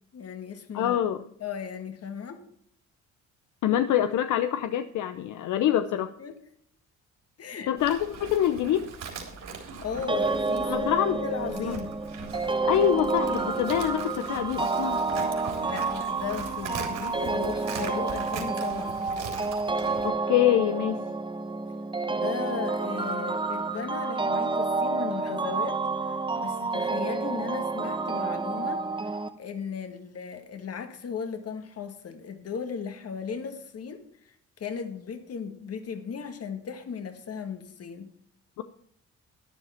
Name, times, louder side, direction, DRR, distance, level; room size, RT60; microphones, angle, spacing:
voice 1, 0.1-1.0 1.4-2.4 6.2-6.4 7.4-7.7 9.4-11.9 12.8-12.9 13.2-13.3 15.6-19.0 22.1-28.9 29.4-38.1, left 6 dB, 55° left, 1.8 m, -36 dB
voice 2, 0.7-1.3 3.6-6.1 7.7-8.9 10.6-11.2 11.6-11.8 12.5-15.0 20.0-21.1 38.6-38.7, left 11 dB, 75° left, 0.7 m, -25 dB
Livestock farm animals working animals, 7.8-20.1, right 5 dB, 65° right, 3.6 m, -40 dB
sound 1, 10.1-29.3, right 3 dB, 15° right, 1.1 m, -29 dB
12.0 x 10.0 x 4.4 m
cardioid pair, 90°, 30 cm